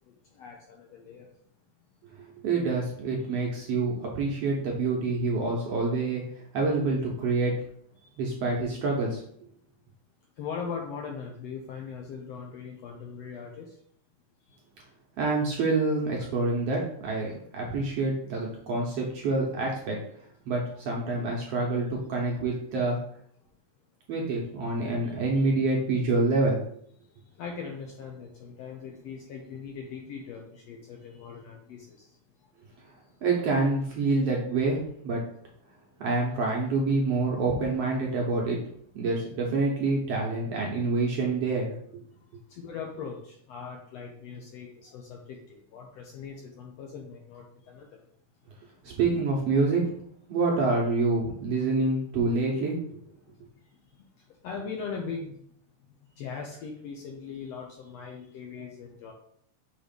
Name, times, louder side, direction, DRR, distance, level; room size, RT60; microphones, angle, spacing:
voice 1, 0.0-1.3 8.0-8.2 10.4-13.8 14.4-14.6 25.0-25.1 27.0-32.5 32.9-33.1 42.1-48.0 53.3-55.4 55.9-59.1, left 5 dB, 75° left, 0 dB, 1.6 m, -40 dB
voice 2, 2.4-7.6 8.2-9.2 15.2-20.0 20.5-23.0 24.1-26.6 33.2-35.2 36.0-38.6 38.9-41.7 48.8-49.8 50.3-52.8, right 3 dB, 65° right, -2 dB, 1.6 m, -27 dB
6.4 x 3.1 x 5.1 m, 0.66 s
omnidirectional pair, 3.6 m